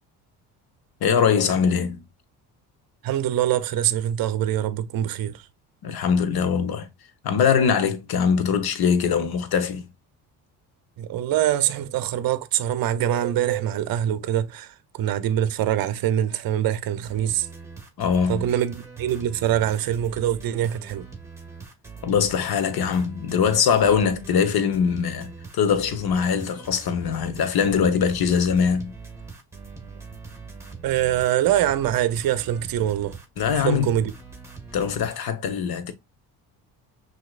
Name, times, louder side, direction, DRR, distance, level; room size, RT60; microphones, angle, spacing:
voice 1, 1.0-2.0 5.8-6.9 7.2-9.9 18.0-18.5 22.0-28.9 33.4-33.9 34.7-35.9, left 7 dB, 50° left, 1.1 m, -22 dB
voice 2, 3.0-5.4 11.0-17.5 18.3-21.1 30.8-33.2 33.6-34.1, right 11 dB, 50° right, 0.7 m, -24 dB
sound 1, 17.0-35.2, right 4 dB, 5° right, 1.6 m, -42 dB
5.9 x 2.9 x 2.4 m
hypercardioid pair, 65°, 47 cm